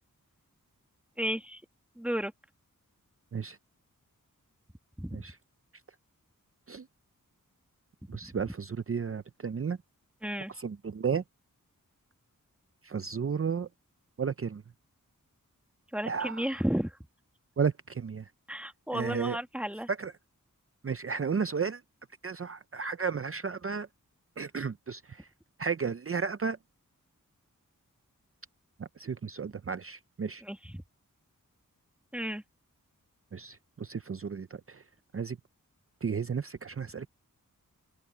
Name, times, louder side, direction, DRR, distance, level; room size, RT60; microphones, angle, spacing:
voice 1, 1.2-1.6 2.0-2.3 5.0-5.2 8.2-8.3 10.2-10.5 15.9-16.9 18.5-19.9 30.4-30.8 32.1-32.4, equal, 5° right, 1.9 m, -33 dB
voice 2, 8.1-9.8 10.5-11.2 12.8-13.7 14.2-14.6 16.0-16.4 17.6-18.2 18.9-19.4 19.9-20.1 20.8-21.8 22.2-23.9 24.4-25.3 25.6-26.6 28.8-30.4 33.3-34.8 35.1-35.4 36.0-37.1, right 6 dB, 40° right, 0.6 m, -33 dB
open air
wide cardioid pair, 70°, 33 cm